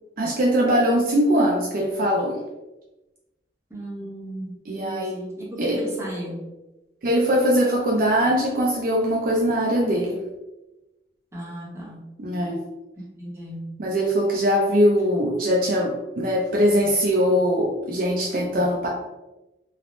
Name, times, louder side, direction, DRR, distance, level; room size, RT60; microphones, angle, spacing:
voice 1, 0.2-2.4 4.7-5.2 5.6-5.8 7.0-10.2 12.2-12.6 13.8-18.9, equal, 50° right, -2 dB, 0.4 m, -21 dB
voice 2, 3.7-6.5 11.3-12.0 13.2-13.6, right 1 dB, 15° right, -5 dB, 0.8 m, -34 dB
3.3 x 2.0 x 2.5 m, 1.0 s
head